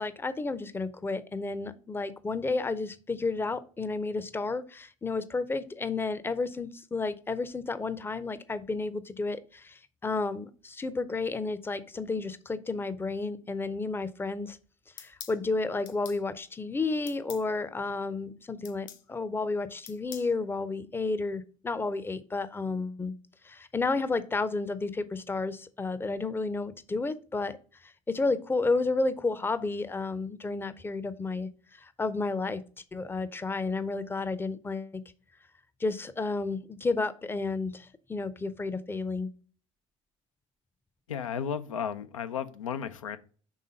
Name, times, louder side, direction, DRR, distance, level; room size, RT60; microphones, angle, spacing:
voice 1, 0.0-14.6 15.0-23.1 23.4-27.6 28.1-31.5 31.8-32.6 32.9-35.0 35.8-39.3, left 3 dB, 15° left, 14 dB, 0.6 m, -31 dB
sound 1, 15.0-15.4 15.9-16.2 17.1-17.5 18.6-19.0 19.9-20.3, left 9 dB, 55° left, 0.9 m, -45 dB
voice 2, 41.1-43.2, left 7 dB, 80° left, 10 dB, 0.5 m, -34 dB
5.5 x 3.7 x 5.2 m, 0.40 s
figure-of-eight pair, 60°, 17 cm